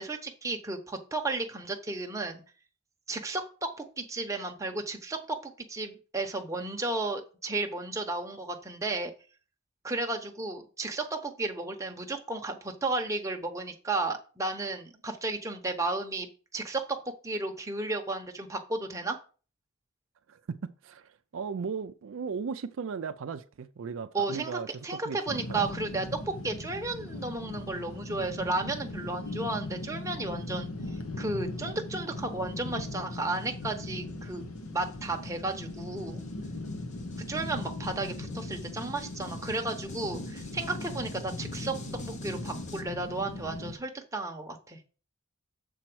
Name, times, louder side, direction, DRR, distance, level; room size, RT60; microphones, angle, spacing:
voice 1, 0.0-2.4 3.1-9.1 9.8-17.0 17.2-19.2 24.1-30.7 31.2-34.5 34.7-36.2 37.3-41.8 42.0-44.8, right 2 dB, 15° right, 0.9 m, -33 dB
voice 2, 20.3-25.6, right 5 dB, 65° right, 0.4 m, -37 dB
sound 1, 25.3-43.7, left 2 dB, 80° left, 1.1 m, -39 dB
sound 2, 32.5-42.8, left 1 dB, 35° left, 0.9 m, -48 dB
6.9 x 4.4 x 6.1 m
head